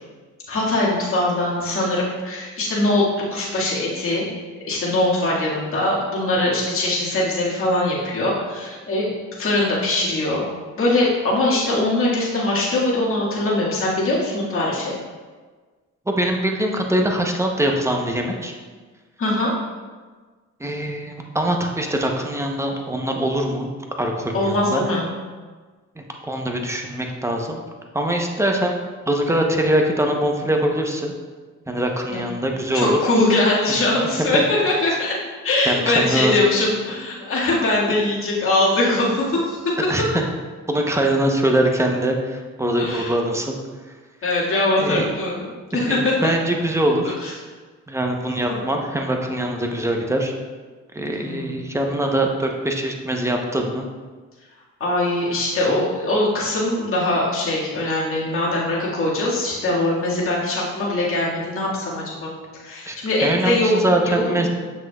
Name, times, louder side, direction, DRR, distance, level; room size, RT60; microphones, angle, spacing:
voice 1, 0.5-3.0 3.3-4.3 4.7-9.1 9.4-10.4 10.8-14.9 19.2-19.5 24.3-25.1 32.1-32.2 32.7-35.2 35.4-39.7 42.8-43.1 44.2-46.2 47.2-47.3 48.5-48.6 51.2-51.6 54.8-62.3 62.6-64.5, left 2 dB, 45° left, -6 dB, 1.9 m, -22 dB
voice 2, 16.1-18.5 20.6-23.7 24.0-24.8 26.0-27.6 27.9-28.8 29.1-31.1 31.7-33.0 33.7-33.8 34.3-34.4 35.7-36.3 39.9-40.0 40.7-43.5 44.8-45.1 45.7-47.2 47.9-50.3 50.9-53.9 55.7-55.8 62.9-63.0 63.2-64.5, right 1 dB, 10° right, 2 dB, 0.8 m, -23 dB
7.4 x 6.0 x 2.3 m, 1.4 s
cardioid pair, 90°, 30 cm